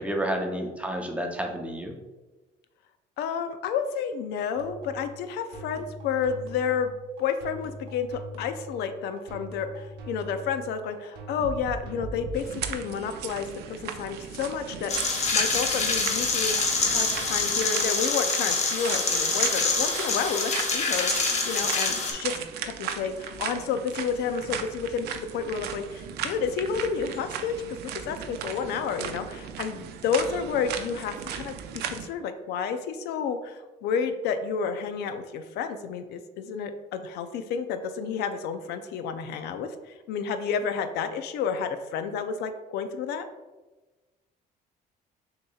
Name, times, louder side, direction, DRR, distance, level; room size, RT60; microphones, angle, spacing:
voice 1, 0.0-1.9, right 1 dB, 5° right, 3 dB, 0.6 m, -30 dB
voice 2, 3.2-6.9 7.2-27.5 27.8-43.3, left 6 dB, 80° left, 8 dB, 0.4 m, -31 dB
sound 1, 4.5-12.7, right 1 dB, 90° right, 0.9 m, -40 dB
sound 2, 12.3-32.1, right 8 dB, 75° right, 0.4 m, -37 dB
sound 3, 14.9-22.1, left 3 dB, 40° left, 0.8 m, -26 dB
6.4 x 2.8 x 2.3 m, 1.2 s
cardioid pair, 110°, 17 cm